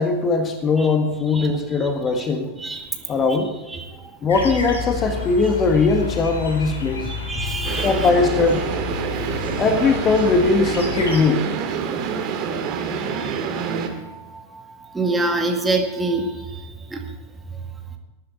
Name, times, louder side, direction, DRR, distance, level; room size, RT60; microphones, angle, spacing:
voice 1, 0.0-2.5 3.1-3.5 4.2-7.1 7.8-8.7 9.6-11.5, left 4 dB, 25° left, 6 dB, 1.6 m, -20 dB
voice 2, 2.6-2.9 3.7-4.0 7.0-8.1 13.2-17.0, right 2 dB, 10° right, 3 dB, 1.9 m, -27 dB
sound 1, 4.3-11.2, left 4 dB, 65° left, 3.6 m, -30 dB
sound 2, 7.6-13.9, right 6 dB, 40° right, 2.3 m, -27 dB
19.5 x 10.5 x 4.0 m, 1.1 s
figure-of-eight pair, 90°, 0 cm